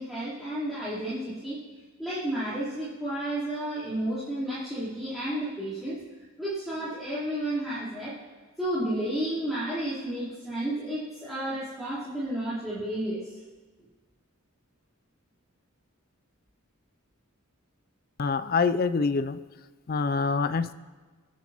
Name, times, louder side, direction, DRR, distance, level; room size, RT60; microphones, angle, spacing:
voice 1, 0.0-1.6 2.0-6.0 6.4-8.2 8.6-13.2, right 1 dB, ahead, -14 dB, 3.7 m, -32 dB
voice 2, 18.2-19.4 19.9-20.7, left 4 dB, 45° left, 13 dB, 0.4 m, -25 dB
26.0 x 10.0 x 3.0 m, 1.4 s
head